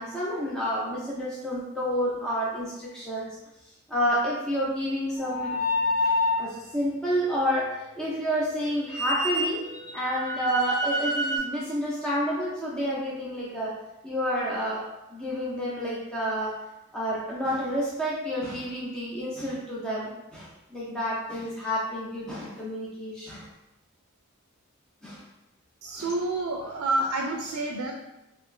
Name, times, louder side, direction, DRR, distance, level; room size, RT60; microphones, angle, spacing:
voice 1, 0.0-3.3 3.9-5.6 6.4-13.8 14.0-16.6 16.9-23.5 25.0-25.2 26.0-26.1, equal, 5° left, -7 dB, 0.4 m, -29 dB
sound 1, 5.2-6.5 8.9-11.4, left 1 dB, 85° left, 0.8 m, -27 dB
voice 2, 25.8-27.9, right 2 dB, 85° right, 1 dB, 0.4 m, -28 dB
2.9 x 2.4 x 3.1 m, 0.94 s
head